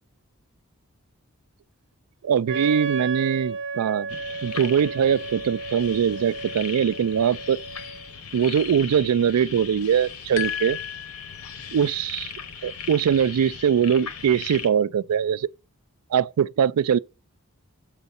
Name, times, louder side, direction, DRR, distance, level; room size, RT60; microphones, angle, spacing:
voice 1, 2.2-4.1 4.4-7.6 8.3-10.8 11.7-12.3 12.6-15.5 16.1-17.0, right 8 dB, 90° right, 0.4 m, -22 dB
Wind instrument woodwind instrument, 2.5-8.1, right 4 dB, 55° right, 0.9 m, -33 dB
sound 1, 4.1-14.7, left 6 dB, 90° left, 1.0 m, -38 dB
sound 2, 10.4-11.9, left 9 dB, 60° left, 0.6 m, -34 dB
7.2 x 4.0 x 5.4 m
head